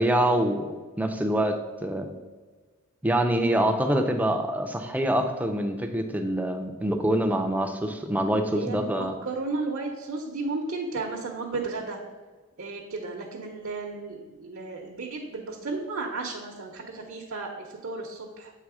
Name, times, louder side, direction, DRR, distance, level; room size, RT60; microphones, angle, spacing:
voice 1, 0.0-2.1 3.0-9.2, right 1 dB, 5° right, 4 dB, 0.4 m, -25 dB
voice 2, 8.5-12.0 12.6-18.5, right 3 dB, 65° right, 0 dB, 0.7 m, -34 dB
7.4 x 3.3 x 4.8 m, 1.4 s
head